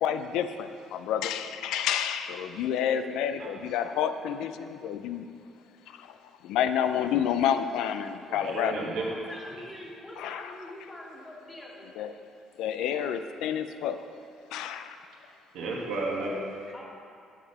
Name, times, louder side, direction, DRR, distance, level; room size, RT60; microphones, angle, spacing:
voice 1, 0.0-5.2 6.0-6.1 6.4-8.8 10.2-10.5 12.0-12.1 12.6-14.0 14.5-14.8, left 9 dB, 80° left, 9 dB, 0.3 m, -29 dB
voice 2, 8.3-9.1 15.5-16.7, right 2 dB, 80° right, -2 dB, 1.4 m, -33 dB
voice 3, 9.1-11.9 16.7-16.9, left 1 dB, 20° left, -3 dB, 1.7 m, -44 dB
6.0 x 6.0 x 5.4 m, 2.4 s
cardioid pair, 85°, 0 cm